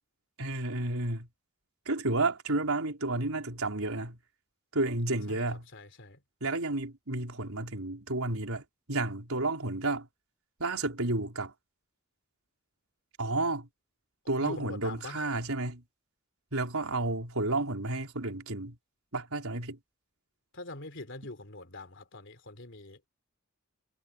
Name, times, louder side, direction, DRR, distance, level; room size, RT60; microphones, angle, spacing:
voice 1, 0.4-1.3 1.9-4.2 4.7-5.7 6.4-8.6 8.9-10.1 10.6-11.5 13.2-13.7 14.3-15.8 16.5-18.7 19.1-19.8, right 2 dB, 85° right, 4.2 m, -31 dB
voice 2, 5.7-6.2 14.4-15.2 20.5-23.1, left 2 dB, 60° left, 3.5 m, -43 dB
head